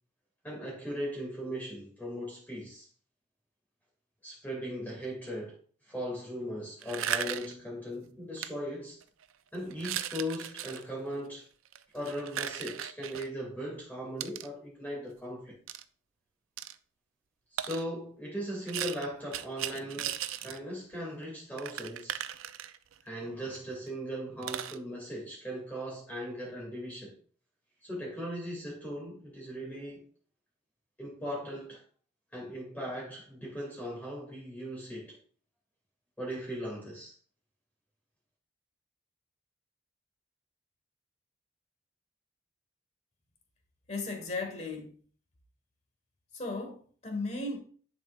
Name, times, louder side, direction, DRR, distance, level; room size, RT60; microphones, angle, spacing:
voice 1, 0.4-2.9 4.2-5.6 5.8-9.0 9.5-11.5 11.9-15.6 17.5-22.2 23.0-27.1 27.8-30.0 31.0-31.8 32.3-35.2 36.2-37.1, equal, 10° left, 2.2 m, -38 dB
sound 1, 6.8-7.6 8.4-8.5 9.0-9.2 9.7-10.8 11.7-13.3 14.2-14.5 15.7-15.8 16.6-16.8 17.6-17.9 18.7-20.6 20.9-21.0 21.2-21.3 21.6-23.0 23.5-23.6 23.9-24.0 24.4-24.8, right 10 dB, 75° right, 0.4 m, -37 dB
voice 2, 43.9-44.9 46.3-47.6, left 3 dB, 35° left, 1.3 m, -36 dB
10.5 x 4.4 x 2.4 m
head